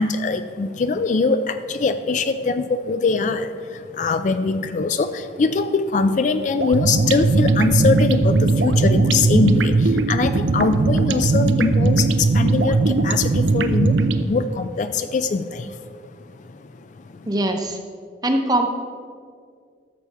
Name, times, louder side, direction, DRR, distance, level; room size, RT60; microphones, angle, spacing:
voice 1, 0.0-15.8 16.4-17.3, left 4 dB, 45° left, 10 dB, 0.3 m, -22 dB
sound 1, 6.6-14.2, right 3 dB, 85° right, 0.5 m, -19 dB
voice 2, 17.3-17.8 18.2-18.7, right 1 dB, 20° right, 4 dB, 0.7 m, -21 dB
13.0 x 6.9 x 3.4 m, 2.1 s
head